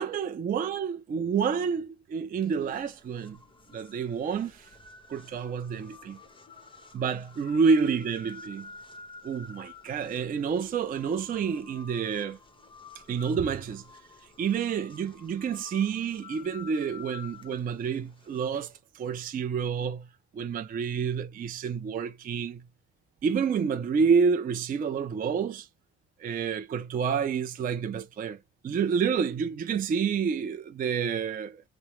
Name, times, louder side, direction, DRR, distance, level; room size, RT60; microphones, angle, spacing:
voice 1, 0.0-3.4 3.7-4.7 5.1-6.2 6.9-8.7 9.2-12.4 13.1-13.8 14.4-20.1 20.3-22.6 23.2-25.7 26.2-28.4 28.6-31.6, right 6 dB, 30° right, 0.4 m, -29 dB
sound 1, 2.4-18.8, left 5 dB, 15° left, 0.9 m, -50 dB
2.8 x 2.0 x 3.0 m
cardioid pair, 90°, 30 cm